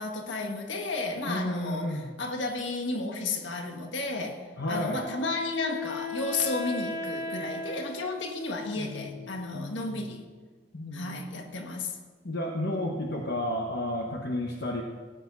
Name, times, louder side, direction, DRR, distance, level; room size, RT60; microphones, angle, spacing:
voice 1, 0.0-4.4 4.7-10.2 10.9-12.0, left 3 dB, 75° left, 4 dB, 1.6 m, -33 dB
voice 2, 1.3-2.1 4.6-5.0 8.8-9.2 9.5-10.1 10.7-11.2 12.2-14.8, left 1 dB, 60° left, 0 dB, 1.1 m, -32 dB
Wind instrument woodwind instrument, 4.7-9.7, left 2 dB, 45° left, 1.4 m, -38 dB
17.0 x 8.4 x 5.4 m, 1.5 s
head